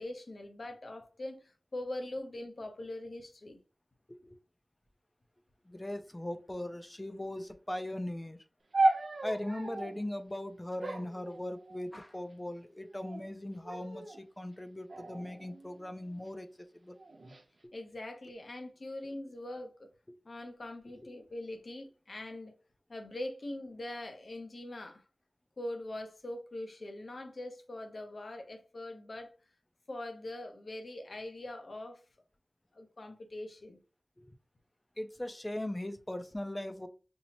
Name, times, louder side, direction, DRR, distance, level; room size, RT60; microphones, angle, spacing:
voice 1, 0.0-3.6 17.7-19.9 20.2-22.5 22.9-25.0 25.6-29.3 29.9-32.0 32.7-33.8, left 1 dB, 60° left, 0.8 m, -42 dB
voice 2, 5.7-8.4 9.2-17.0 20.1-20.2 34.2-34.3 35.0-36.9, left 1 dB, 15° left, 0.5 m, -39 dB
sound 1, 8.7-10.0 10.8-12.0 12.8-13.3 13.6-14.2 14.9-16.2 17.0-17.4, right 2 dB, 70° right, 0.7 m, -34 dB
5.4 x 2.0 x 2.9 m
wide cardioid pair, 70°, 0 cm